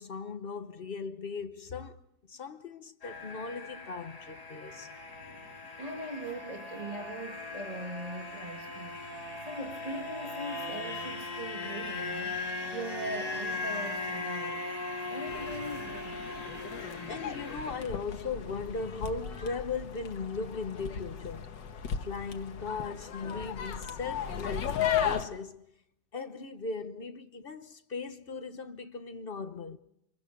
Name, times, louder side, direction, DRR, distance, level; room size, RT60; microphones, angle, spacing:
voice 1, 0.0-2.0 2.3-5.0 11.6-11.7 17.1-21.5 22.0-25.6 26.1-29.8, left 4 dB, 40° left, 0.8 m, -38 dB
sound 1, 3.0-17.7, left 2 dB, 65° left, 4.6 m, -38 dB
voice 2, 5.8-9.0 9.4-12.4 12.7-14.7 15.1-16.3, right 1 dB, 20° right, 1.8 m, -40 dB
sound 2, 15.3-25.3, left 8 dB, 85° left, 1.9 m, -36 dB
26.0 x 23.5 x 5.3 m
omnidirectional pair, 1.9 m